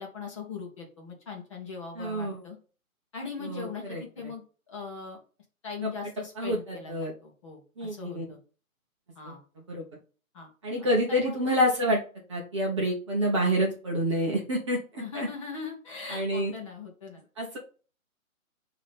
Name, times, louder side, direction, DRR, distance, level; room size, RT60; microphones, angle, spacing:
voice 1, 0.0-2.6 3.1-5.2 5.6-8.4 9.2-9.4 10.3-10.5 10.8-11.4 15.0-17.2, left 5 dB, 20° left, 0 dB, 1.0 m, -40 dB
voice 2, 2.0-2.4 3.4-4.0 5.8-5.9 6.4-7.1 7.8-8.2 9.2-9.4 9.7-9.8 10.6-12.0 12.3-15.3 16.1-16.5 17.4-17.6, equal, 20° right, -2 dB, 0.8 m, -28 dB
7.1 x 2.9 x 5.1 m, 0.38 s
hypercardioid pair, 155°, 43 cm